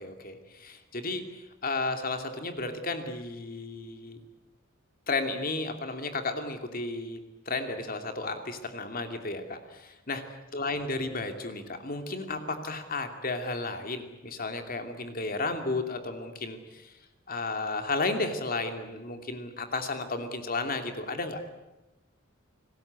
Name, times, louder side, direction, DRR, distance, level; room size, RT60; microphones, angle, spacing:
voice 1, 0.0-4.2 5.1-7.2 7.5-10.2 10.5-16.9 17.3-21.4, left 3 dB, 45° left, 6 dB, 2.8 m, -33 dB
29.5 x 20.0 x 8.3 m, 1.0 s
head